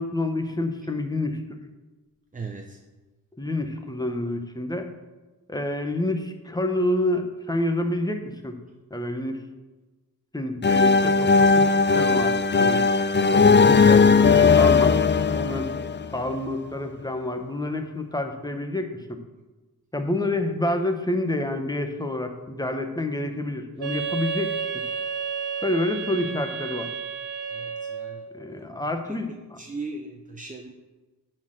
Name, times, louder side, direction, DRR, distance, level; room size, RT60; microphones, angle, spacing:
voice 1, 0.0-1.4 3.4-4.9 5.5-8.6 8.9-9.4 10.3-11.7 11.9-12.8 13.3-15.7 16.1-19.2 19.9-24.5 25.6-26.9 28.3-29.3, left 1 dB, 10° left, 6 dB, 1.1 m, -28 dB
voice 2, 2.3-2.8 27.5-30.7, right 3 dB, 20° right, 3 dB, 0.8 m, -39 dB
sound 1, 10.6-16.4, left 5 dB, 30° left, 0.4 m, -18 dB
Wind instrument woodwind instrument, 23.8-28.2, right 6 dB, 80° right, 1.5 m, -31 dB
9.4 x 4.4 x 6.4 m, 1.2 s
wide cardioid pair, 65°, 39 cm